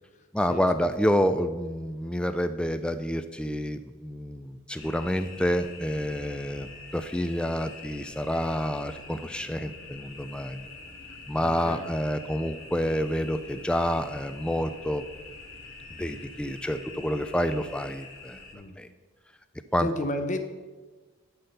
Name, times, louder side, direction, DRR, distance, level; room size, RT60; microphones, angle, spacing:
voice 1, 0.3-10.7 11.3-15.0 15.9-18.4 18.8-18.9 19.7-19.9, equal, 5° left, 9 dB, 0.3 m, -28 dB
Step into Bio Life Signs, 4.8-18.5, left 3 dB, 65° left, 2.0 m, -45 dB
voice 2, 11.4-11.9 18.5-18.8 19.8-20.4, left 1 dB, 35° left, 7 dB, 0.7 m, -32 dB
11.5 x 4.2 x 6.6 m, 1.3 s
head